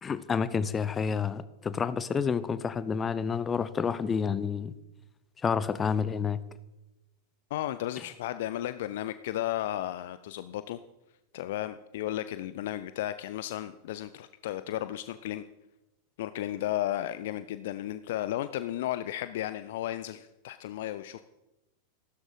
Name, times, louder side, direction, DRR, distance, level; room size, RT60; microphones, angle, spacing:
voice 1, 0.0-4.7 5.4-6.4, left 6 dB, 20° left, 15 dB, 0.9 m, -29 dB
voice 2, 7.5-10.8 11.3-15.4 16.2-21.2, left 13 dB, 55° left, 13 dB, 0.5 m, -34 dB
15.0 x 13.0 x 4.9 m, 0.96 s
figure-of-eight pair, 90°, 0 cm